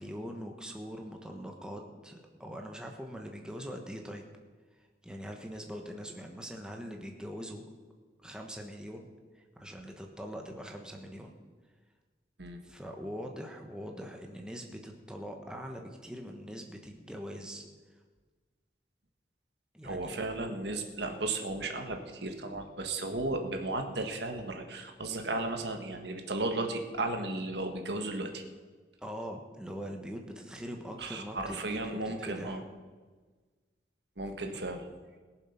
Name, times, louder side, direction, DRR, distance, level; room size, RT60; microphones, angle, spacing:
voice 1, 0.0-4.2 4.8-7.6 8.2-9.1 9.3-11.3 12.6-17.7 19.7-20.2 29.0-32.6 34.5-34.6, equal, 5° right, 2 dB, 1.3 m, -42 dB
voice 2, 19.8-28.4 31.0-32.6 34.2-34.8, right 2 dB, 75° right, 5 dB, 1.7 m, -35 dB
21.0 x 7.4 x 5.9 m, 1.4 s
head